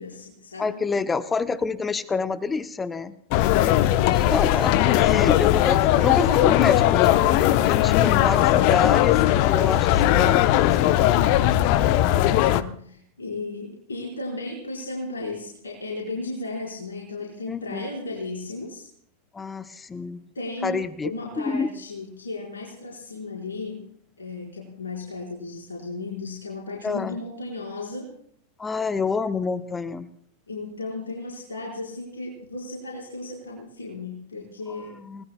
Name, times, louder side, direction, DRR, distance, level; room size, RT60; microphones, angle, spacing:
voice 1, 0.0-0.8 3.4-4.8 11.7-18.9 20.3-20.8 21.0-23.9 24.2-28.1 30.5-34.9, left 3 dB, 75° left, -3 dB, 4.5 m, -35 dB
voice 2, 0.6-3.1 4.1-10.9 17.5-17.9 19.3-20.2 20.6-21.1 21.4-21.7 26.8-27.2 28.6-30.1 35.1-35.2, left 4 dB, 15° left, 13 dB, 0.8 m, -28 dB
sound 1, 3.3-12.6, left 13 dB, 45° left, 0.7 m, -19 dB
29.5 x 19.5 x 2.2 m, 0.65 s
figure-of-eight pair, 90°, 0 cm